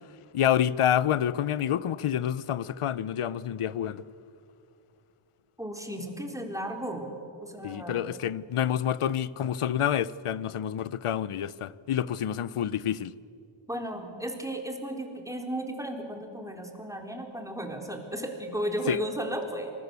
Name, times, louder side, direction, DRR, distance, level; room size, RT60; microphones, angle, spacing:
voice 1, 0.3-4.0 7.6-13.1 18.9-19.0, left 10 dB, 85° left, 0.8 m, -28 dB
voice 2, 5.6-7.1 7.4-8.1 13.7-19.7, right 1 dB, 5° right, 4.0 m, -34 dB
26.5 x 20.0 x 8.2 m
wide cardioid pair, 65°, 50 cm